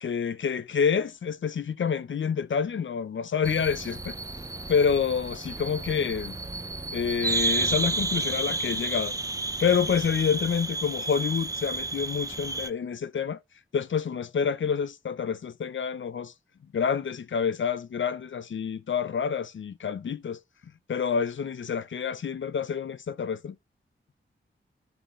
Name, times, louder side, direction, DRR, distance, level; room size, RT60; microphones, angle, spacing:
voice 1, 0.0-4.1 4.7-6.4 6.9-9.1 9.6-13.4 13.7-16.3 16.7-20.4 20.9-23.5, left 6 dB, 70° left, 0.5 m, -28 dB
sound 1, 3.4-12.7, right 3 dB, 15° right, 0.5 m, -31 dB
7.8 x 4.9 x 4.7 m
wide cardioid pair, 80°, 21 cm